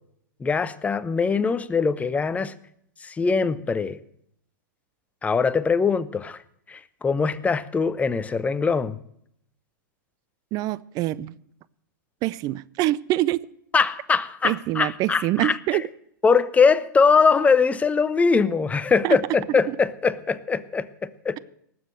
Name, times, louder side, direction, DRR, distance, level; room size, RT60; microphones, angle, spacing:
voice 1, 0.4-2.5 3.0-4.0 5.2-6.4 6.7-9.0 13.7-15.8 16.2-21.4, left 5 dB, 15° left, 15 dB, 0.8 m, -22 dB
voice 2, 10.5-11.3 12.2-13.5 14.4-15.8 19.0-19.2 19.7-19.8, right 16 dB, 35° right, 19 dB, 0.6 m, -25 dB
19.0 x 7.6 x 7.7 m, 0.71 s
hypercardioid pair, 120°, 11 cm